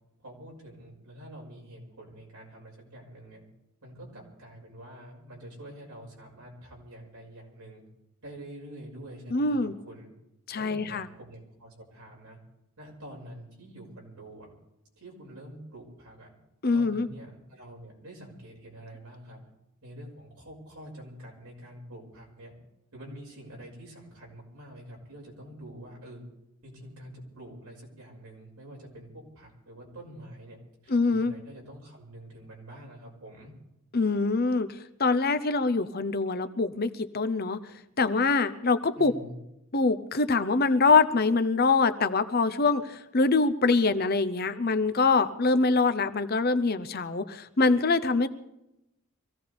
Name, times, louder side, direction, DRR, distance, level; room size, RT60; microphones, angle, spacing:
voice 1, 0.2-3.4 3.8-7.8 8.2-10.1 10.5-12.4 12.8-14.5 15.0-16.3 16.7-19.4 19.8-22.5 22.9-26.2 26.6-30.6 30.8-33.5 38.9-39.4, right 1 dB, 85° right, -1 dB, 5.8 m, -46 dB
voice 2, 9.3-9.7 10.5-11.1 16.6-17.1 30.9-31.3 33.9-34.7 35.0-37.6 38.0-39.1 39.7-48.3, left 3 dB, 45° left, 11 dB, 0.7 m, -24 dB
25.0 x 16.0 x 3.5 m, 0.87 s
head